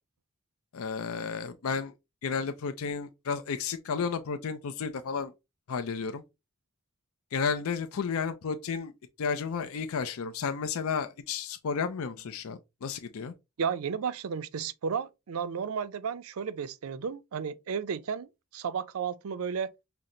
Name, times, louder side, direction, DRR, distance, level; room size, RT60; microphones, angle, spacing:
voice 1, 0.7-1.9 2.2-5.3 5.7-6.2 7.3-8.9 9.2-13.3, left 5 dB, 80° left, 0.4 m, -32 dB
voice 2, 13.6-19.7, right 6 dB, 80° right, 0.4 m, -33 dB
5.7 x 2.0 x 3.7 m
head